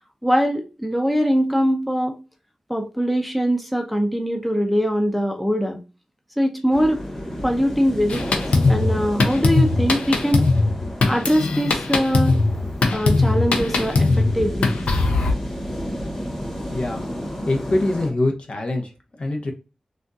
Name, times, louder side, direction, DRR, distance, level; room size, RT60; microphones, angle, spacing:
voice 1, 0.2-2.2 2.7-5.8 6.4-7.0 7.4-8.4 8.7-10.4 11.1-12.4 12.9-14.7, equal, ahead, 0.6 m, -22 dB
sound 1, 6.7-18.1, equal, 25° left, 1.9 m, -32 dB
Drum kit, 8.1-15.3, left 3 dB, 90° left, 0.5 m, -20 dB
voice 2, 16.7-17.1 17.5-18.9 19.2-19.5, left 2 dB, 60° left, 0.8 m, -23 dB
3.4 x 2.4 x 2.6 m
cardioid pair, 55°, 2 cm